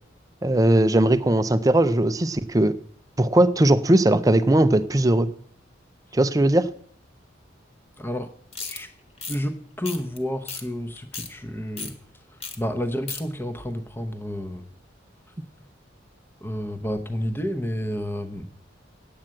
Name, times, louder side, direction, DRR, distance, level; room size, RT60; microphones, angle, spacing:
voice 1, 0.4-2.8 3.2-5.3 6.1-6.7, right 1 dB, 20° right, 14 dB, 0.5 m, -19 dB
voice 2, 8.0-8.3 8.6-8.9 9.3-11.9 12.6-14.7 16.4-18.5, equal, 10° left, 7 dB, 0.9 m, -30 dB
sound 1, 8.5-8.8 9.2-9.4 9.8-10.2 10.5-10.6 11.0-11.3 11.8-11.9 12.4-12.6 12.8-13.2, left 5 dB, 35° left, 1.4 m, -34 dB
8.9 x 8.7 x 7.6 m, 0.62 s
head